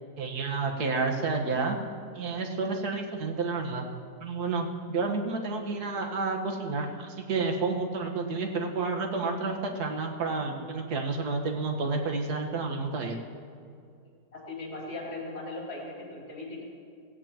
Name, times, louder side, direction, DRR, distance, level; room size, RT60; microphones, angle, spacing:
voice 1, 0.2-1.8 2.2-3.9 4.2-13.2, right 4 dB, 60° right, 2 dB, 1.9 m, -30 dB
voice 2, 14.3-16.6, left 2 dB, 55° left, -5 dB, 4.7 m, -39 dB
17.5 x 17.0 x 3.0 m, 2.3 s
omnidirectional pair, 2.0 m